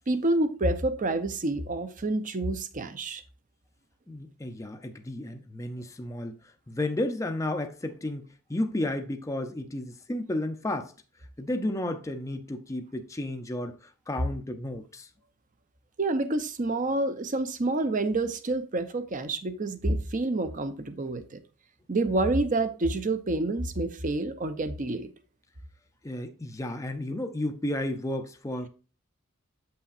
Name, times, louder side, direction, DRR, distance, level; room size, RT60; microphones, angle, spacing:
voice 1, 0.1-3.2 16.0-21.4 21.9-25.1, right 2 dB, 35° right, 0.6 m, -28 dB
voice 2, 4.1-6.4 6.7-10.9 11.4-15.1 26.0-28.7, left 1 dB, 15° left, 0.5 m, -32 dB
7.6 x 5.6 x 2.5 m
head